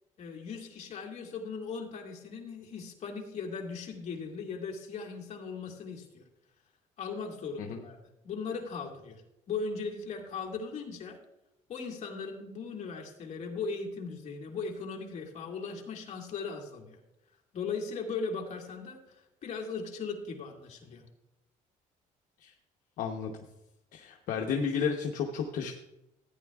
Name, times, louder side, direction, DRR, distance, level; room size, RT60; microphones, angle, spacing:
voice 1, 0.2-6.2 7.0-8.0 8.2-9.2 9.5-11.2 11.7-17.0 17.5-19.0 19.4-21.0, left 5 dB, 50° left, 0 dB, 2.0 m, -38 dB
voice 2, 23.0-23.3 23.9-25.7, left 6 dB, 70° left, 2 dB, 0.9 m, -32 dB
14.5 x 9.5 x 2.3 m, 0.88 s
cardioid pair, 125°, 14 cm